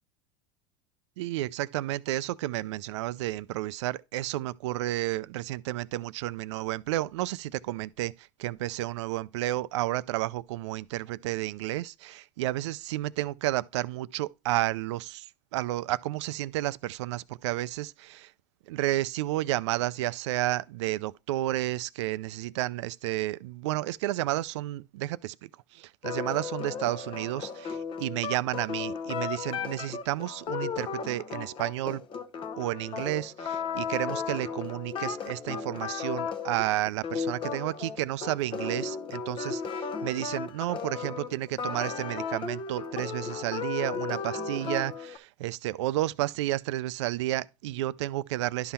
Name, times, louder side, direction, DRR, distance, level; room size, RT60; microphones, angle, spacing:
voice 1, 1.2-18.3 18.7-32.0 32.6-48.7, right 16 dB, 85° right, 0.4 m, -31 dB
sound 1, 26.0-45.2, left 6 dB, 35° left, 0.8 m, -35 dB
11.5 x 3.8 x 4.2 m
supercardioid pair, 110°, 15 cm